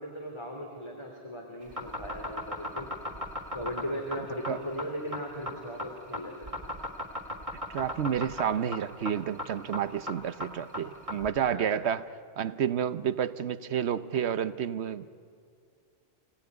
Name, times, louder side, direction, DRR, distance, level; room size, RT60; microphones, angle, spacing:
voice 1, 0.0-2.9 3.5-6.3 11.5-11.7, equal, 25° left, 0 dB, 3.3 m, -37 dB
sound 1, 1.6-11.3, left 1 dB, 30° right, 2.3 m, -36 dB
voice 2, 7.7-12.0 12.4-15.1, right 8 dB, 80° right, 13 dB, 1.1 m, -30 dB
29.0 x 17.5 x 9.6 m, 2.3 s
omnidirectional pair, 1.1 m